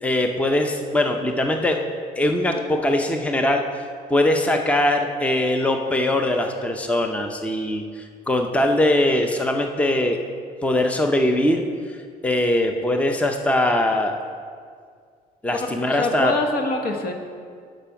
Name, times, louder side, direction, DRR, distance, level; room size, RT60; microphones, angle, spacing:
voice 1, 0.0-1.8 2.2-3.7 4.1-10.2 10.6-11.6 12.2-14.1 15.4-16.3, left 1 dB, 10° left, 4 dB, 0.6 m, -21 dB
voice 2, 15.9-17.1, left 2 dB, 65° left, 3 dB, 1.3 m, -24 dB
11.5 x 5.2 x 5.8 m, 2.1 s
cardioid pair, 110°, 17 cm